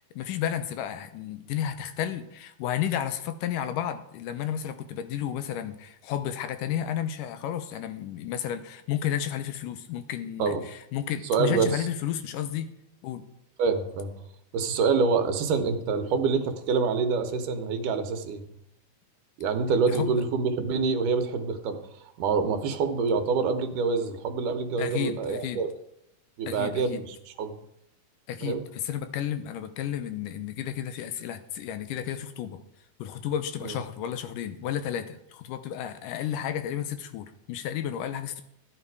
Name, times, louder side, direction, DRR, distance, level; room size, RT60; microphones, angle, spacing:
voice 1, 0.0-12.7 13.0-13.3 19.9-20.1 24.8-25.6 26.5-27.0 28.3-32.6 33.0-38.4, left 10 dB, 90° left, 10 dB, 2.5 m, -32 dB
voice 2, 11.3-11.9 13.6-14.1 14.5-18.5 19.4-21.8 22.2-25.7 26.4-27.5 28.4-28.6 33.6-33.8, right 5 dB, 85° right, 6 dB, 2.7 m, -26 dB
14.0 x 10.0 x 4.8 m, 0.78 s
omnidirectional pair, 3.7 m